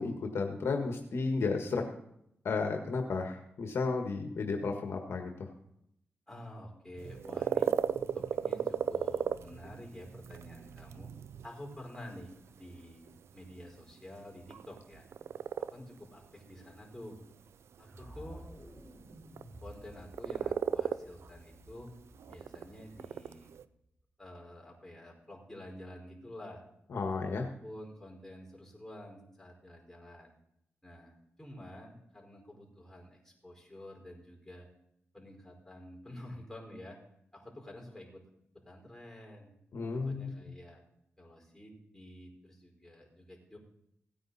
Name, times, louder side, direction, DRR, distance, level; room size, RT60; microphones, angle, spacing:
voice 1, 0.0-1.8 2.4-5.5 26.9-27.5 39.7-40.3, left 4 dB, 75° left, 3 dB, 1.6 m, -33 dB
voice 2, 6.3-7.7 8.1-11.1 11.4-13.0 13.3-15.0 15.6-17.2 17.8-18.4 19.6-21.9 22.3-23.5 24.2-26.6 27.4-30.3 30.8-34.7 35.1-37.0 37.3-38.2 38.5-39.5 39.9-40.8 41.2-43.6, left 1 dB, 10° left, -1 dB, 5.1 m, -49 dB
sound 1, 7.0-23.6, right 8 dB, 85° right, 0.5 m, -37 dB
sound 2, 17.8-23.9, right 1 dB, 30° right, 5.5 m, -53 dB
17.0 x 9.4 x 4.2 m, 0.76 s
cardioid pair, 75°, 4 cm